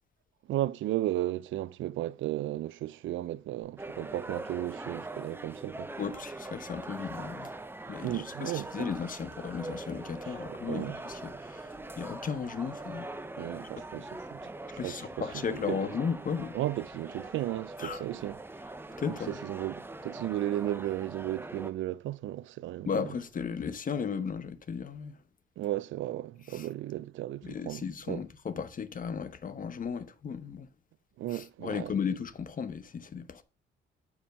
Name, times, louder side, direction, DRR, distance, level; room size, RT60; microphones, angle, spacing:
voice 1, 0.5-5.9 8.0-8.9 10.5-11.0 13.4-15.8 16.5-18.4 19.1-23.0 25.6-28.2 31.2-32.0, right 14 dB, 75° right, 0.5 m, -35 dB
sound 1, 3.8-21.7, right 2 dB, 10° right, 0.7 m, -42 dB
voice 2, 6.0-7.6 7.9-13.1 13.9-14.0 14.8-16.6 17.8-18.0 19.0-19.4 22.9-25.2 26.5-26.7 27.4-30.7 31.3-33.4, left 6 dB, 45° left, 1.0 m, -35 dB
8.7 x 4.9 x 5.3 m
cardioid pair, 90°, 20 cm